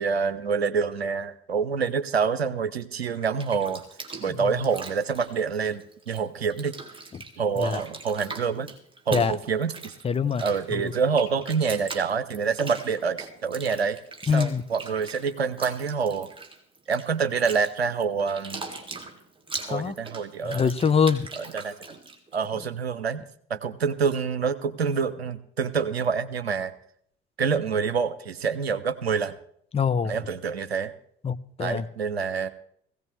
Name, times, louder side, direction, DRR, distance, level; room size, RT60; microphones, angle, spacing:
voice 1, 0.0-3.8 4.2-6.8 7.4-8.7 9.1-9.9 10.4-14.0 14.3-16.3 16.9-18.7 19.7-20.7 21.4-21.8 22.3-23.2 23.5-26.7 27.4-29.3 30.0-30.9 31.6-32.5, right 5 dB, 80° right, 0.7 m, -27 dB
Bathtub (filling or washing), 3.1-6.2 6.5-22.4, right 3 dB, 15° right, 2.4 m, -41 dB
voice 2, 10.0-10.4 10.7-10.9 14.3-14.6 19.7-19.9 20.4-21.3 29.7-30.2 31.2-31.9, left 6 dB, 20° left, 0.6 m, -24 dB
18.0 x 16.5 x 3.3 m
figure-of-eight pair, 50°, 31 cm